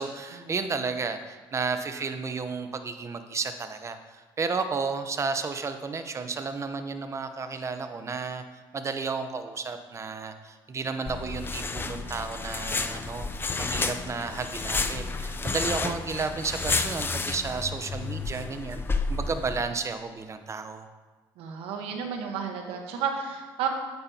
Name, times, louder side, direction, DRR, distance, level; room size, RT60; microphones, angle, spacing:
voice 1, 0.0-8.4 8.7-13.3 13.6-20.9, right 4 dB, 30° right, 8 dB, 0.8 m, -32 dB
sound 1, 11.1-19.6, left 3 dB, 25° left, 0.5 m, -31 dB
voice 2, 21.4-23.7, right 7 dB, 85° right, 3 dB, 1.2 m, -32 dB
9.4 x 8.7 x 2.8 m, 1.3 s
cardioid pair, 85°, 9 cm